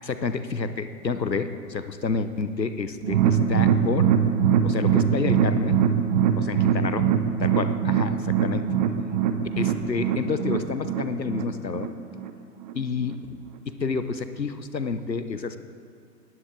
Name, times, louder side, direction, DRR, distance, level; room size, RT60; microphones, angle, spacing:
voice 1, 0.0-4.1 4.6-5.8 6.5-7.1 7.4-8.7 9.6-11.9 12.7-13.2 13.7-15.6, left 4 dB, 90° left, 11 dB, 0.9 m, -29 dB
sound 1, 3.0-12.3 12.6-12.7 13.1-13.2, right 8 dB, 25° right, 0.8 m, -23 dB
19.0 x 11.0 x 3.8 m, 2.4 s
figure-of-eight pair, 120°, 49 cm